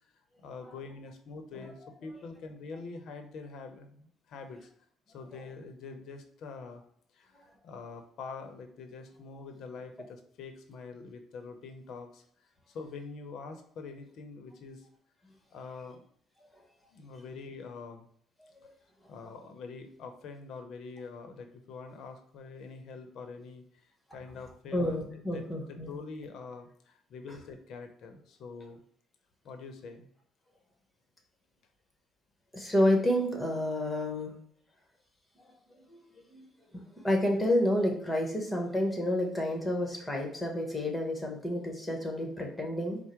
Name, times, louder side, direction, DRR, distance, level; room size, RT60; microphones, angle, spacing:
voice 1, 0.4-4.7 5.1-6.8 7.1-7.3 7.6-12.2 12.7-14.8 15.5-16.0 16.9-18.1 19.1-23.6 24.1-28.8 29.4-30.1, left 4 dB, 70° left, 6 dB, 0.7 m, -45 dB
voice 2, 24.7-25.9 27.3-27.4 32.5-34.3 35.4-35.5 35.9-36.5 36.7-43.0, left 1 dB, 10° left, 1 dB, 1.2 m, -30 dB
4.6 x 2.1 x 4.4 m, 0.63 s
cardioid pair, 95°, 0 cm